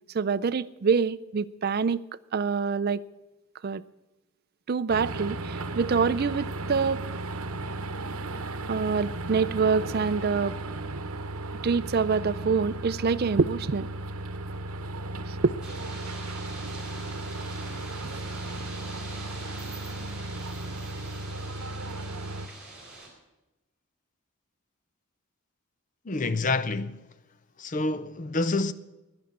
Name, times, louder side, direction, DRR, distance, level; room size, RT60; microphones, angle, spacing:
voice 1, 0.1-2.0 2.3-3.0 3.6-3.8 4.7-7.0 8.7-10.6 11.6-13.9 15.3-15.5, right 5 dB, 45° right, 0.4 m, -25 dB
sound 1, 4.9-22.5, right 2 dB, 75° right, 0.9 m, -35 dB
sound 2, 15.6-23.1, right 2 dB, 5° right, 4.0 m, -44 dB
voice 2, 26.1-27.0 27.6-28.7, left 3 dB, 35° left, 0.5 m, -27 dB
11.0 x 10.5 x 8.6 m
head